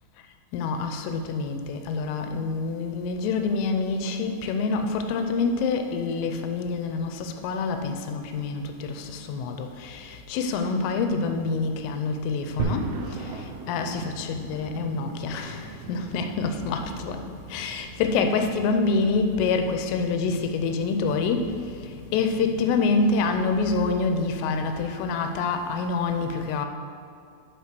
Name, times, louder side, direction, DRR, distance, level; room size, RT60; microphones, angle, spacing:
voice 1, 0.5-21.5 21.8-26.7, left 4 dB, 80° left, 6 dB, 3.0 m, -27 dB
sound 1, 12.6-22.9, right 4 dB, 85° right, 3.4 m, -39 dB
11.5 x 4.1 x 5.9 m, 2.3 s
omnidirectional pair, 6.0 m